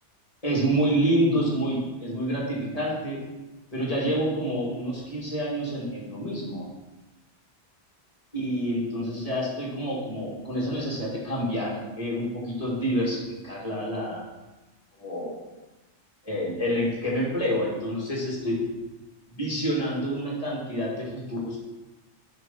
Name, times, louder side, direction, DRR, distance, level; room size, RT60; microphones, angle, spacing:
voice 1, 0.4-3.2 3.7-6.7 8.3-14.2 15.0-15.4 16.2-18.6 19.3-21.6, equal, 30° left, -5 dB, 2.3 m, -28 dB
6.1 x 5.3 x 5.7 m, 1.1 s
omnidirectional pair, 1.2 m